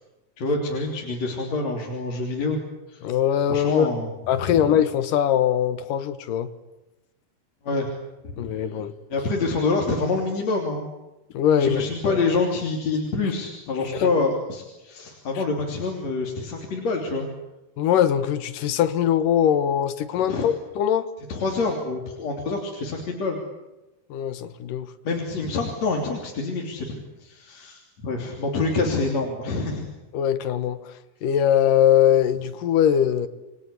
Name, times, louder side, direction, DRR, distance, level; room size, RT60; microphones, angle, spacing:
voice 1, 0.4-2.6 2.9-3.1 3.5-4.1 4.4-4.7 7.6-7.9 8.2-8.3 9.1-10.9 11.5-17.3 20.3-20.4 21.3-23.4 25.0-29.9, left 3 dB, 45° left, 0 dB, 4.1 m, -26 dB
voice 2, 3.0-3.9 4.3-6.5 8.4-8.9 11.3-12.2 14.0-14.1 17.8-21.1 24.1-24.9 30.1-30.8 31.2-33.3, left 9 dB, 65° left, 11 dB, 2.6 m, -21 dB
29.5 x 23.0 x 8.5 m, 1.0 s
omnidirectional pair, 4.7 m